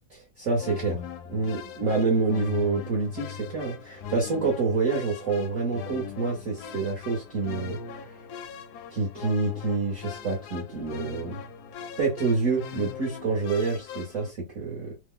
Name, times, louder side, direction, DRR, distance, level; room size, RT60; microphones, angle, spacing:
voice 1, 0.1-1.0 1.3-8.2 8.9-11.4 12.0-15.0, right 3 dB, 55° right, 0.9 m, -27 dB
sound 1, 0.6-14.3, left 6 dB, 75° left, 0.9 m, -40 dB
3.2 x 2.0 x 3.6 m
omnidirectional pair, 2.1 m